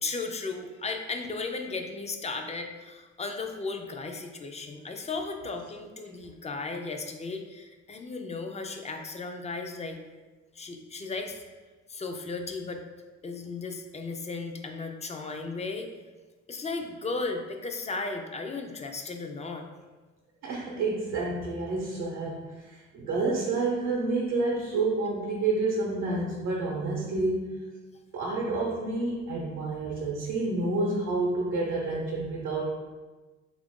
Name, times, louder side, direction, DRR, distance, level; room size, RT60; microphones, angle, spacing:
voice 1, 0.0-10.0 10.6-11.4 11.9-12.8 13.2-15.9 16.5-19.6, left 3 dB, 25° left, 4 dB, 0.3 m, -35 dB
voice 2, 20.4-27.6 28.1-32.7, right 3 dB, 80° right, -3 dB, 0.7 m, -29 dB
2.9 x 2.4 x 3.5 m, 1.3 s
cardioid pair, 90°, 30 cm